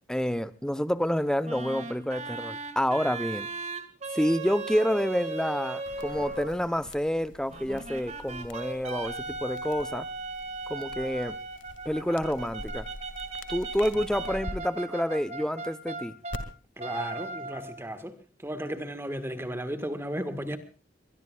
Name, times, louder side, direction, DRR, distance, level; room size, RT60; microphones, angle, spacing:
voice 1, 0.1-3.5 4.1-10.1 10.7-11.4 11.9-12.9 13.5-16.2, equal, 5° left, 0.8 m, -28 dB
sound 1, 1.4-6.6 7.5-16.5 16.8-17.8, right 3 dB, 35° right, 2.2 m, -37 dB
sound 2, 5.9-14.5 16.3-16.4, left 1 dB, 75° left, 2.1 m, -45 dB
voice 2, 16.8-18.1 18.4-20.6, right 1 dB, 15° right, 1.6 m, -34 dB
22.5 x 22.0 x 2.4 m
head